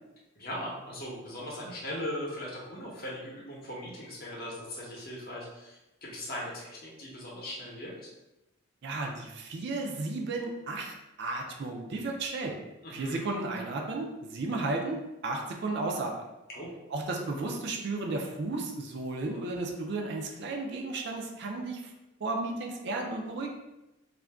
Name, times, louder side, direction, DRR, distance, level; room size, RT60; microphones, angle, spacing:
voice 1, 0.3-8.1 12.8-13.2 16.5-16.7, left 1 dB, 45° left, -4 dB, 0.8 m, -39 dB
voice 2, 8.8-12.5 12.9-16.1 16.9-21.9 22.2-23.5, right 2 dB, 55° right, 1 dB, 0.4 m, -34 dB
2.4 x 2.2 x 3.3 m, 0.98 s
head